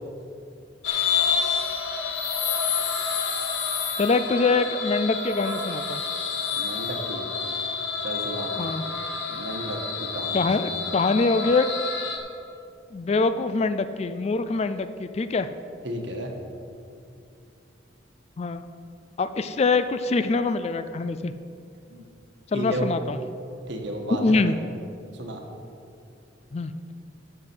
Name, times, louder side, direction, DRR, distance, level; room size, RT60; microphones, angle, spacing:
sound 1, 0.8-12.2, left 5 dB, 75° left, 1.2 m, -28 dB
voice 1, 4.0-6.0 8.5-8.8 10.3-11.7 12.9-15.5 18.4-18.6 19.2-21.3 22.5-23.2 24.2-24.6 26.5-26.7, left 3 dB, 30° left, 11 dB, 0.3 m, -24 dB
voice 2, 6.5-7.2 8.0-8.5 9.3-10.7 15.8-16.3 21.9-22.0 22.5-22.9 23.7-24.4 25.1-25.4, right 1 dB, 65° right, 2 dB, 1.4 m, -33 dB
12.0 x 7.8 x 4.5 m, 2.6 s
head